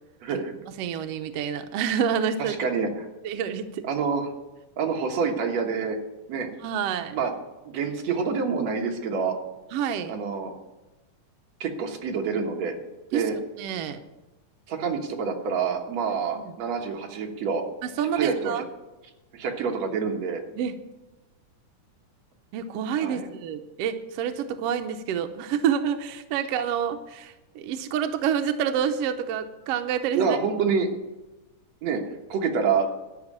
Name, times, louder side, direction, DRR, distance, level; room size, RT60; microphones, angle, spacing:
voice 1, 0.2-0.5 2.4-3.1 3.8-4.3 4.8-6.0 6.3-6.5 7.1-7.3 7.6-9.3 10.1-10.5 11.6-12.7 13.1-13.4 14.7-17.6 18.2-18.6 19.3-20.4 23.0-23.3 30.1-30.9 31.8-32.0 32.3-32.9, right 5 dB, 60° right, 2 dB, 2.4 m, -27 dB
voice 2, 0.8-2.6 3.2-3.8 6.5-7.1 9.7-10.1 13.1-14.0 16.3-16.5 17.8-18.6 20.6-20.8 22.5-30.4, right 8 dB, 85° right, 8 dB, 1.4 m, -28 dB
13.0 x 6.0 x 8.5 m, 1.1 s
omnidirectional pair, 3.7 m